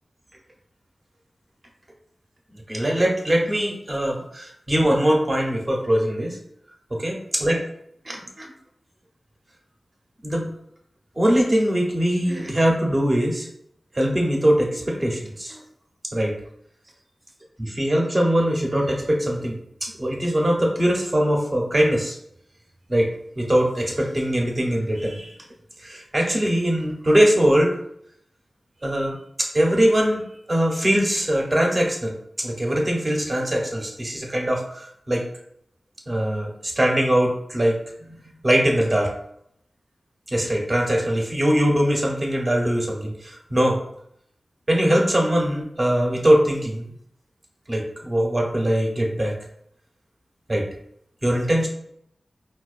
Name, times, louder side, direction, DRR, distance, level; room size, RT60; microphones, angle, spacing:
voice 1, 2.7-6.4 6.9-7.6 8.1-8.5 10.2-10.5 11.2-13.5 13.9-15.6 16.1-16.4 17.6-22.2 22.9-23.1 23.4-25.3 25.8-27.7 28.8-30.2 30.5-35.2 36.1-37.8 38.4-39.1 40.3-43.8 44.7-46.9 47.7-49.4 50.5-50.7 51.2-51.7, equal, 30° right, 0 dB, 0.7 m, -22 dB
4.4 x 2.2 x 2.4 m, 0.72 s
wide cardioid pair, 85°, 0 cm